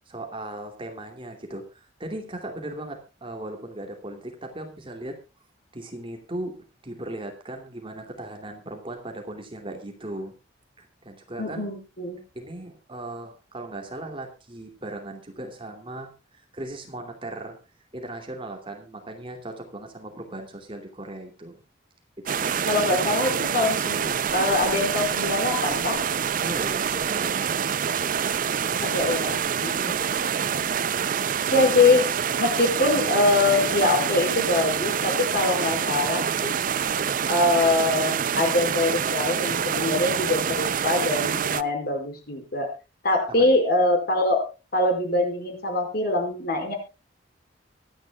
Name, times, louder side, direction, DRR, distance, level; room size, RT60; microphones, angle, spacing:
voice 1, 0.1-5.2 5.7-6.6 6.8-10.3 10.8-11.7 12.3-16.1 16.4-17.6 17.9-21.6 22.2-22.7 26.4-27.8 43.3-43.6, right 1 dB, 30° right, 4 dB, 2.7 m, -37 dB
voice 2, 11.4-12.2 22.7-26.0 28.8-30.0 31.5-32.1 32.4-36.6 37.3-42.7 43.0-46.7, left 2 dB, 55° left, 4 dB, 5.1 m, -23 dB
sound 1, 22.3-41.6, right 7 dB, 45° right, 0.5 m, -26 dB
25.0 x 10.0 x 2.3 m, 0.30 s
head